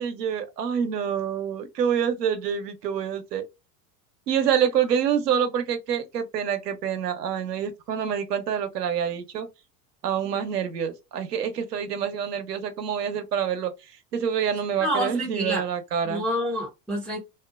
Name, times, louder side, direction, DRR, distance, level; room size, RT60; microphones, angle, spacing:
voice 1, 0.0-3.4 4.3-9.5 10.0-16.3, right 8 dB, 70° right, 0.8 m, -27 dB
voice 2, 14.8-15.7 16.0-17.2, equal, ahead, 0.3 m, -28 dB
2.8 x 2.1 x 2.2 m
figure-of-eight pair, 75°, 49 cm